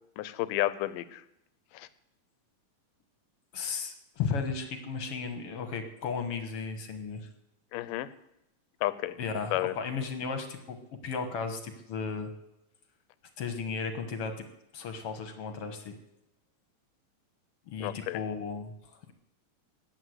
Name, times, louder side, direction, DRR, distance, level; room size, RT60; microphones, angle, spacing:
voice 1, 0.2-1.2 1.7-1.9 7.7-8.1 8.8-9.1 9.5-9.7 17.8-18.2, left 15 dB, 80° left, 15 dB, 2.3 m, -31 dB
voice 2, 3.5-7.3 9.2-10.8 11.0-12.3 13.4-14.3 14.7-16.0 17.7-19.1, left 5 dB, 55° left, 7 dB, 1.8 m, -35 dB
14.5 x 9.7 x 8.0 m, 0.84 s
omnidirectional pair, 3.9 m